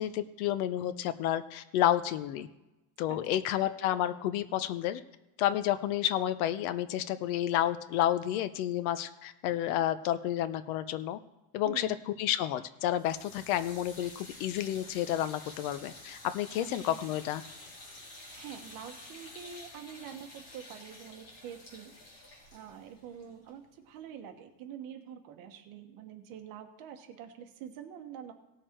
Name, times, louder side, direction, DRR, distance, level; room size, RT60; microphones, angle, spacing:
voice 1, 0.0-2.5 3.0-5.0 5.4-11.2 11.5-17.4, left 12 dB, 85° left, 12 dB, 0.9 m, -30 dB
voice 2, 3.1-3.7 11.6-12.0 16.6-17.0 18.3-28.3, right 8 dB, 50° right, 5 dB, 1.4 m, -46 dB
sound 1, 12.9-24.0, left 2 dB, 35° left, 3.5 m, -50 dB
17.5 x 6.6 x 4.5 m, 0.97 s
cardioid pair, 180°, 42 cm